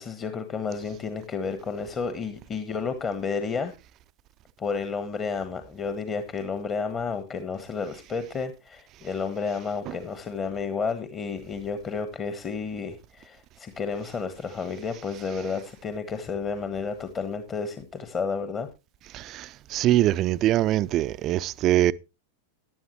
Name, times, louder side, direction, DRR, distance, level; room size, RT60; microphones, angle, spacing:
voice 1, 0.0-3.7 4.6-18.7, left 5 dB, 25° left, 1.3 m, -31 dB
voice 2, 19.1-21.9, right 14 dB, 35° right, 0.5 m, -23 dB
15.0 x 11.0 x 3.1 m
figure-of-eight pair, 90°, 0 cm